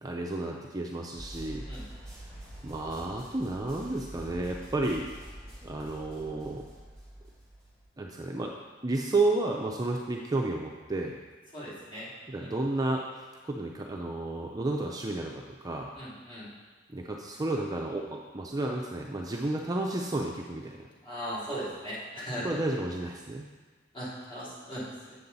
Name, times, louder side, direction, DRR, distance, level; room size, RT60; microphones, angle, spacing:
voice 1, 0.0-1.6 2.6-5.1 5.6-6.6 8.0-8.5 8.8-11.2 12.3-15.9 16.9-20.9 22.4-23.5, right 2 dB, 20° right, 0 dB, 0.5 m, -32 dB
sound 1, 1.2-7.8, right 1 dB, 5° left, 1.9 m, -46 dB
voice 2, 11.5-12.1 16.0-16.5 21.0-22.6 23.9-25.1, equal, 30° left, -9 dB, 2.8 m, -38 dB
7.7 x 7.1 x 4.0 m, 1.3 s
head